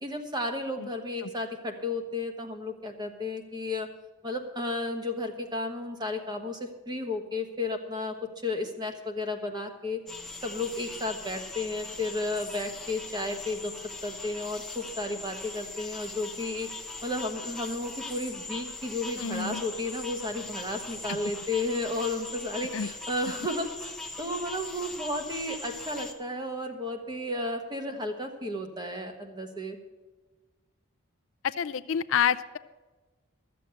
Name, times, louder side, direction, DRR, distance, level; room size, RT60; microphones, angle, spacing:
voice 1, 0.0-3.9 4.2-8.1 8.4-10.0 10.4-13.7 14.0-16.7 17.0-29.8, left 2 dB, 20° right, 5 dB, 1.3 m, -33 dB
sound 1, 10.1-26.1, left 3 dB, ahead, 0.9 m, -40 dB
voice 2, 19.2-19.6 21.1-21.2 22.7-22.9 31.4-32.6, left 8 dB, 65° left, 14 dB, 0.4 m, -28 dB
13.0 x 7.7 x 7.9 m, 1.3 s
head